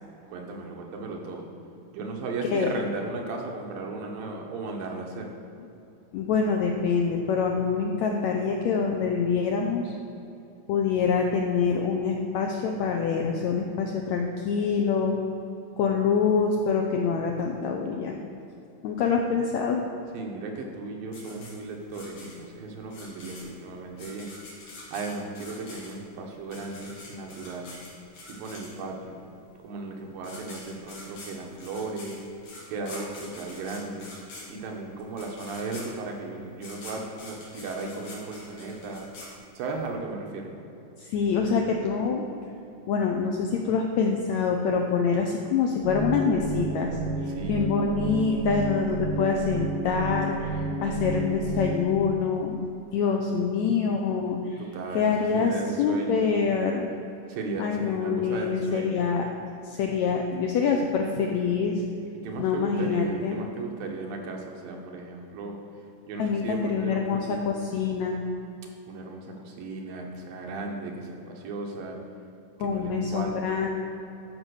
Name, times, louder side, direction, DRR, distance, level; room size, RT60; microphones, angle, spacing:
voice 1, 0.3-1.5 1.9-5.3 20.1-24.3 24.6-27.7 28.3-29.2 29.6-32.2 32.7-34.1 34.5-39.1 39.5-40.5 47.3-47.7 54.6-56.3 57.3-59.0 62.2-65.6 66.1-67.4 68.9-72.0 72.6-73.6, right 3 dB, 85° right, 1 dB, 3.0 m, -36 dB
voice 2, 6.1-9.9 10.7-15.2 15.8-18.2 18.8-19.8 41.0-42.2 42.9-47.0 47.5-54.6 54.9-55.5 55.8-56.9 57.6-59.2 59.6-61.8 62.4-63.4 66.2-68.2 72.6-73.7, left 5 dB, 90° left, 2 dB, 1.6 m, -25 dB
sound 1, 21.1-29.1 29.9-30.0 30.2-39.9, left 2 dB, 75° left, 4.2 m, -45 dB
sound 2, 45.8-51.8, right 3 dB, 60° right, 1.3 m, -31 dB
13.0 x 5.2 x 6.4 m, 2.8 s
omnidirectional pair, 4.0 m